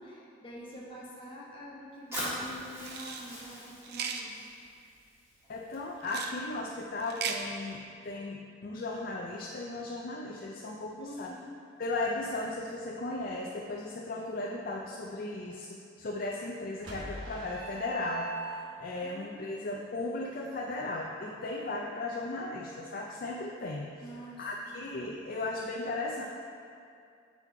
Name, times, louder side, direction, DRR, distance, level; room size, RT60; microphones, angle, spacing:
voice 1, 0.0-4.6 11.0-11.6 18.8-19.5 24.0-24.5, equal, 25° left, -6 dB, 1.2 m, -46 dB
Fire, 2.1-6.1, equal, 15° right, 1.7 m, -41 dB
sound 1, 2.8-3.2 3.8-4.2 6.0-6.4 7.0-7.4, right 7 dB, 55° right, 0.4 m, -36 dB
voice 2, 5.5-11.3 11.8-23.9 24.4-26.3, left 2 dB, 45° left, -2 dB, 0.4 m, -36 dB
sound 2, 16.8-18.9, right 2 dB, 85° right, 1.3 m, -40 dB
7.2 x 4.1 x 4.5 m, 2.4 s
head